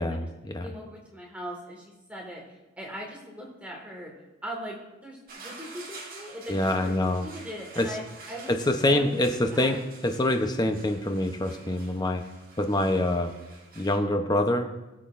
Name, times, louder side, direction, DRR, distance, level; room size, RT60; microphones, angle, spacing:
voice 1, 0.0-0.7 6.5-7.3 7.8-8.0 8.5-12.2 12.6-13.4 13.8-14.7, left 1 dB, 20° left, 6 dB, 0.7 m, -25 dB
voice 2, 0.6-4.1 4.4-9.8, equal, 5° right, -2 dB, 1.9 m, -40 dB
sound 1, 5.3-14.0, right 3 dB, 45° right, 1.7 m, -48 dB
18.0 x 7.5 x 2.5 m, 1.1 s
head